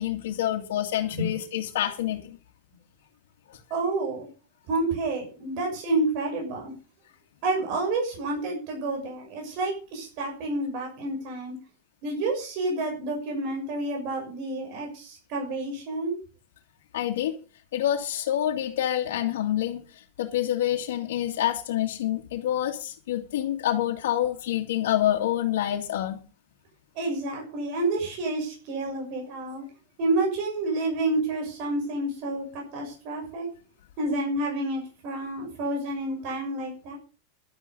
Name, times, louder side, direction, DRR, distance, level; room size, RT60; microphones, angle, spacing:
voice 1, 0.0-2.4 16.9-17.4 17.7-19.8 20.2-26.2, left 12 dB, 90° left, 2.2 m, -27 dB
voice 2, 3.7-4.3 4.7-6.7 7.4-11.6 12.0-16.2 26.9-29.7 30.0-33.5 34.0-37.0, right 2 dB, 45° right, 6.5 m, -29 dB
12.0 x 9.0 x 6.8 m
supercardioid pair, 170°, 0 cm